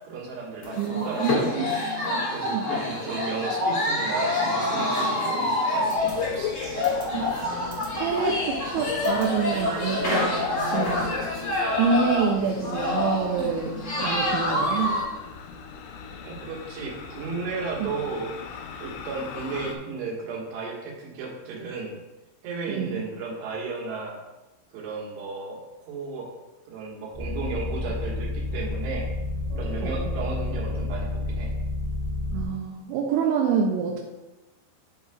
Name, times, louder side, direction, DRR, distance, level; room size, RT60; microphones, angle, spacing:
voice 1, 0.1-1.6 2.3-6.5 16.2-18.3 18.8-22.0 22.4-24.2 24.7-25.6 25.9-26.3 26.7-29.1 29.6-31.5, right 4 dB, 70° right, -3 dB, 3.5 m, -34 dB
sound 1, 0.6-15.0, left 2 dB, 40° left, 1.6 m, -27 dB
voice 2, 0.8-1.8 2.5-2.7 7.1-7.3 8.0-10.4 10.7-11.2 11.8-13.8 14.0-15.0 17.8-17.9 22.7-23.0 29.8-30.1 32.3-34.0, right 6 dB, 85° right, 0 dB, 2.9 m, -27 dB
sound 2, 6.0-19.8, left 6 dB, 80° left, 2.5 m, -37 dB
sound 3, 27.1-32.5, left 2 dB, 35° right, 2.3 m, -30 dB
11.0 x 5.5 x 2.3 m, 1.0 s
omnidirectional pair, 5.4 m